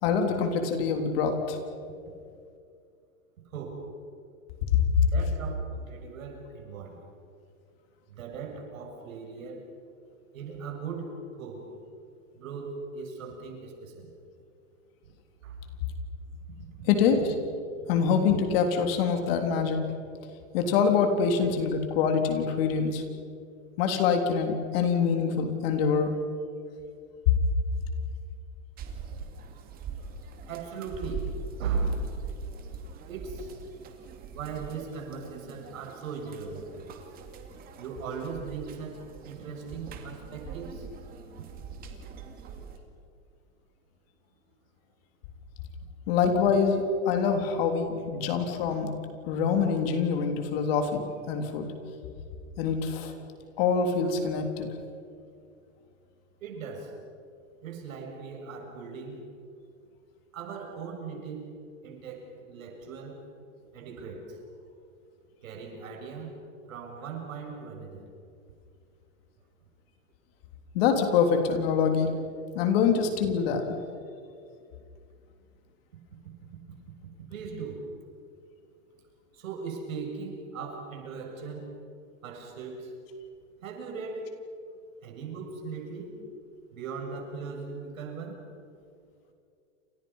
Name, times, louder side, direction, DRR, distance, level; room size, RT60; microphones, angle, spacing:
voice 1, 0.0-1.6 16.9-17.4 17.9-19.8 20.5-23.0 23.8-26.1 46.1-48.9 49.2-51.7 52.6-53.1 53.6-54.7 70.7-72.1 72.5-73.8, left 6 dB, 45° left, 5 dB, 3.5 m, -25 dB
voice 2, 3.5-3.9 5.0-7.0 8.1-9.7 10.3-11.7 12.3-14.1 15.4-15.6 30.5-31.3 31.6-32.2 33.1-33.5 34.3-37.0 37.8-40.9 56.4-57.0 57.6-59.3 60.3-61.5 61.8-63.3 63.7-64.4 65.4-66.4 66.7-68.1 77.3-77.9 79.3-81.8 82.2-83.0 83.6-84.4 85.0-86.2 86.7-88.4, right 4 dB, 80° right, 2 dB, 7.1 m, -38 dB
sound 1, 28.8-42.8, right 5 dB, 20° right, 2.4 m, -42 dB
29.5 x 26.5 x 5.7 m, 2.4 s
supercardioid pair, 165°, 40 cm